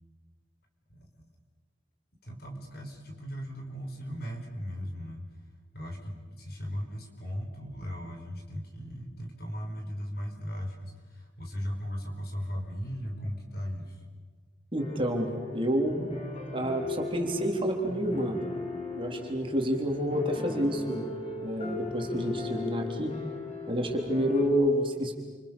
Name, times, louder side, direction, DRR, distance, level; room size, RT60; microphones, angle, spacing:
voice 1, 0.9-1.2 2.2-5.3 5.7-14.0, equal, 55° left, 3 dB, 5.1 m, -37 dB
voice 2, 14.7-16.1 16.5-18.4 19.0-21.1 21.4-23.2 23.7-25.1, equal, 30° right, 2 dB, 3.6 m, -29 dB
sound 1, 14.8-24.5, left 3 dB, 35° left, 4.2 m, -38 dB
29.5 x 27.0 x 7.1 m, 1.4 s
head